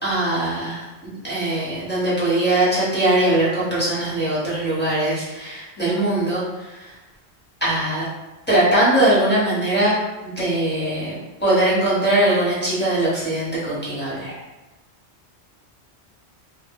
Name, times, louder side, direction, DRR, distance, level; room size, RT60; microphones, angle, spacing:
voice 1, 0.0-6.9 7.6-8.1 8.5-11.1 11.4-14.4, right 1 dB, 10° left, -9 dB, 0.8 m, -21 dB
2.1 x 2.1 x 3.6 m, 1.1 s
omnidirectional pair, 1.1 m